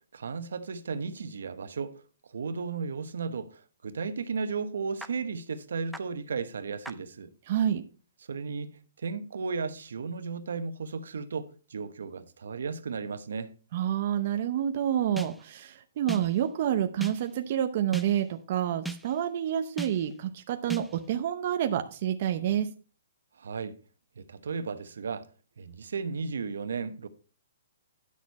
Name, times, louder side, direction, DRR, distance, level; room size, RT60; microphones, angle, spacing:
voice 1, 0.1-7.3 8.3-13.5 23.4-23.8 24.2-25.3 25.6-27.1, right 5 dB, 80° right, 1.0 m, -35 dB
sound 1, 5.0-5.1 5.9-6.0 6.8-6.9 15.2-15.6 16.1-16.5 17.0-17.4 17.9-18.4 18.8-19.3 19.8-20.2 20.7-21.1, right 3 dB, ahead, 0.3 m, -39 dB
voice 2, 7.5-7.8 13.7-22.7, right 10 dB, 35° right, 0.6 m, -28 dB
10.0 x 6.4 x 4.1 m
hypercardioid pair, 175°, 0 cm